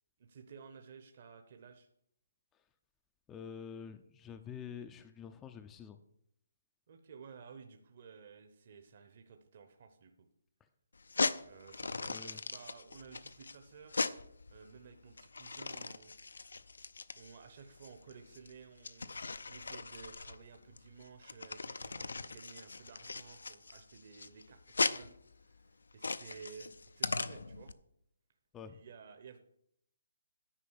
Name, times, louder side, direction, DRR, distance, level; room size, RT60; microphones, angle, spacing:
voice 1, 0.2-1.9 6.9-10.3 11.4-14.0 14.5-16.1 16.4-16.6 17.2-19.1 19.5-25.1 25.4-27.7 28.7-29.4, right 6 dB, 40° right, 6 dB, 0.8 m, -54 dB
voice 2, 3.3-6.0 12.1-12.4 28.5-28.8, left 7 dB, 10° left, 8 dB, 0.4 m, -47 dB
sound 1, 11.0-27.7, left 3 dB, 90° left, 0.6 m, -39 dB
10.0 x 5.1 x 7.3 m, 0.73 s
hypercardioid pair, 165°, 0 cm